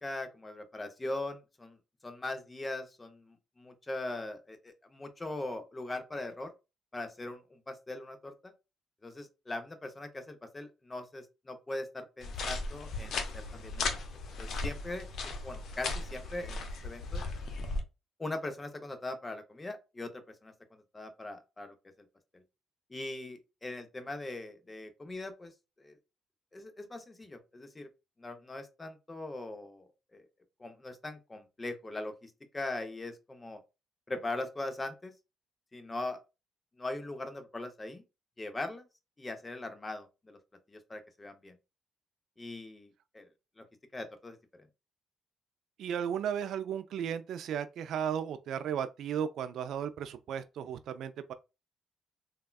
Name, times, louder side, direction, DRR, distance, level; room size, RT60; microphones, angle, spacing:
voice 1, 0.0-1.8 2.0-6.5 6.9-8.5 9.0-14.0 14.4-15.1 15.4-17.2 18.2-20.5 20.9-21.7 22.3-22.4 22.9-25.5 25.8-26.0 26.5-27.9 28.2-30.2 30.6-33.6 34.1-35.1 35.7-36.2 36.8-38.0 38.4-38.8 39.2-40.4 40.7-41.6 42.4-43.3 43.6-43.7 43.9-44.7, left 2 dB, 20° left, 0.6 m, -40 dB
sound 1, 12.2-17.8, left 3 dB, 70° left, 0.6 m, -36 dB
voice 2, 45.8-51.3, right 8 dB, 75° right, 0.3 m, -35 dB
3.4 x 2.2 x 2.2 m
cardioid pair, 90°, 0 cm